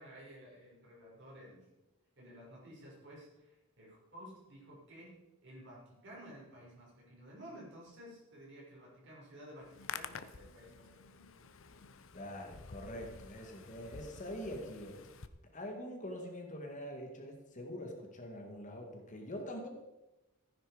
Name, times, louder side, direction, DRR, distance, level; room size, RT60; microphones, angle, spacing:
voice 1, 0.0-1.7 2.2-5.2 5.4-11.5, equal, 55° right, -4 dB, 5.9 m, -53 dB
Hands, 9.6-15.3, left 6 dB, 60° left, 0.8 m, -50 dB
voice 2, 12.1-15.1 15.5-19.7, equal, 35° left, 2 dB, 1.9 m, -44 dB
15.0 x 10.0 x 5.1 m, 1.0 s
head